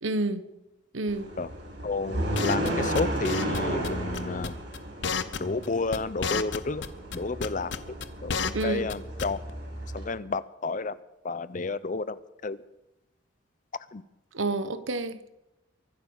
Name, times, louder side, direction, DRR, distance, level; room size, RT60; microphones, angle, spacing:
voice 1, 0.0-0.5 0.9-1.3 8.5-8.9 14.3-15.3, right 2 dB, 85° right, 12 dB, 1.1 m, -29 dB
sound 1, 1.1-10.0, right 1 dB, 65° right, 6.9 m, -34 dB
voice 2, 1.8-4.6 5.4-6.8 7.1-7.7 8.2-9.4 9.9-11.0 11.2-12.6 13.9-14.0, left 3 dB, 40° left, 16 dB, 0.6 m, -31 dB
sound 2, 2.3-2.7 2.9-3.6 3.8-3.9 4.1-4.8 5.0-5.7 5.9-6.9 7.1-8.6 8.9-9.0 9.2-9.5, left 5 dB, 65° left, 0.9 m, -30 dB
23.5 x 8.5 x 7.1 m, 0.96 s
head